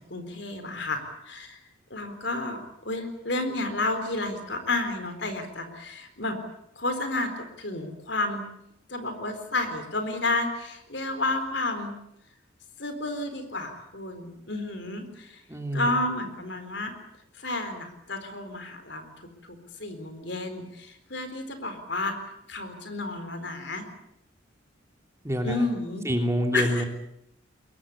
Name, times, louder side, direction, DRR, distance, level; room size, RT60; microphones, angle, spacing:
voice 1, 0.0-1.6 1.9-6.4 6.8-8.5 8.9-11.9 12.8-15.4 15.7-16.9 17.3-22.1 22.5-23.9 25.4-26.1 26.5-26.9, left 2 dB, 60° left, 8 dB, 4.1 m, -31 dB
voice 2, 15.5-15.9 25.2-25.6 26.0-26.8, equal, 15° right, 4 dB, 2.9 m, -26 dB
22.5 x 22.0 x 8.5 m, 0.79 s
head